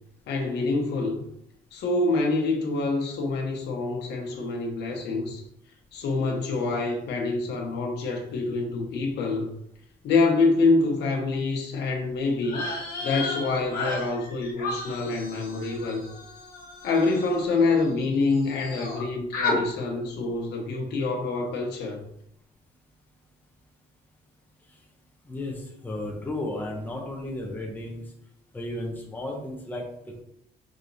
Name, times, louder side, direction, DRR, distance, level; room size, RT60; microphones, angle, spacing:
voice 1, 0.3-1.2 1.7-5.4 5.9-9.5 10.0-12.6 13.0-16.0 16.8-22.0, left 3 dB, 80° left, 2 dB, 0.9 m, -26 dB
sound 1, 12.4-18.0 18.3-19.0 19.3-19.6, left 2 dB, 60° left, 1.1 m, -33 dB
voice 2, 25.3-28.0 28.5-29.8, left 1 dB, 10° left, 0 dB, 0.7 m, -33 dB
4.9 x 2.9 x 2.7 m, 0.74 s
cardioid pair, 155°, 18 cm